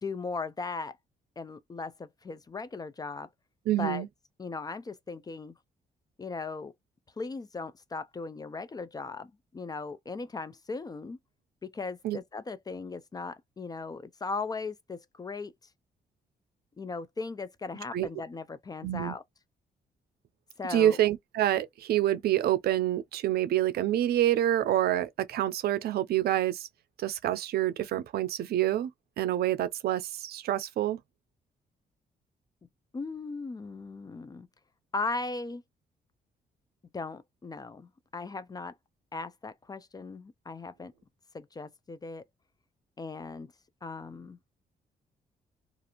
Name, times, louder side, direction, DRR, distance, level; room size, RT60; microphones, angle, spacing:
voice 1, 0.0-1.0 1.4-3.3 3.8-4.0 4.4-5.5 6.2-6.7 7.2-11.2 11.6-15.5 16.8-19.2 20.6-21.0 32.9-34.5 34.9-35.6 36.9-38.7 39.1-40.9 41.3-42.2 43.0-43.5 43.8-44.4, left 3 dB, 25° left, 0.3 m, -38 dB
voice 2, 3.7-4.1 12.0-12.2 17.9-18.1 18.8-19.2 20.7-26.7 27.0-28.9 29.2-31.0, right 12 dB, 75° right, 0.5 m, -27 dB
2.5 x 2.4 x 2.8 m
cardioid pair, 85°, 16 cm